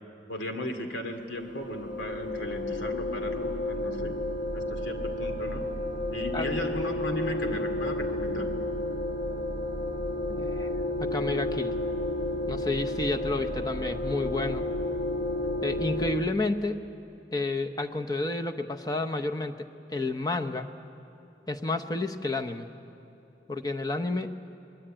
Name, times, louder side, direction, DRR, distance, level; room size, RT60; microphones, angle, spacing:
voice 1, 0.3-4.1 4.5-5.6 6.1-8.5, left 1 dB, 85° left, 5 dB, 2.5 m, -35 dB
sound 1, 1.4-16.2, left 1 dB, 65° left, 1.6 m, -31 dB
voice 2, 10.3-10.7 11.0-11.7 12.5-14.6 15.6-16.8 17.3-20.7 21.5-22.7 23.5-24.3, left 2 dB, 20° left, 5 dB, 0.9 m, -30 dB
25.0 x 21.0 x 8.9 m, 2.9 s
head